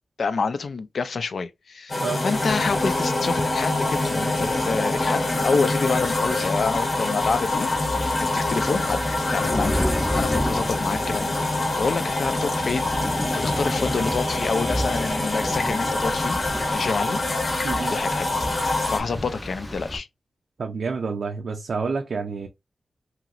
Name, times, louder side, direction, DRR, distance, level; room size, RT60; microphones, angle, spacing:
voice 1, 0.2-7.7 8.2-9.0 9.3-9.7 10.2-11.3 11.8-12.9 13.4-16.4 16.7-17.2 17.9-18.3 18.9-20.1, left 4 dB, 60° left, 0.4 m, -27 dB
sound 1, 1.9-19.0, left 2 dB, 40° left, 0.8 m, -25 dB
Rain, 2.3-20.0, equal, 10° left, 0.6 m, -32 dB
voice 2, 20.6-22.5, right 4 dB, 60° right, 0.4 m, -28 dB
2.9 x 2.9 x 2.4 m
wide cardioid pair, 165°, 0 cm